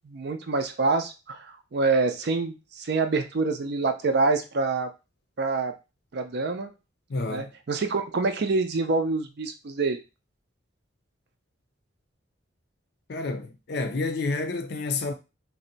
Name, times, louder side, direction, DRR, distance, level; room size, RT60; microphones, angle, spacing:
voice 1, 0.1-4.9 5.4-5.7 6.1-6.7 7.3-10.0, right 3 dB, 55° right, 0.5 m, -26 dB
voice 2, 7.1-7.5 13.1-15.1, left 3 dB, 55° left, 0.5 m, -29 dB
2.6 x 2.1 x 3.9 m
head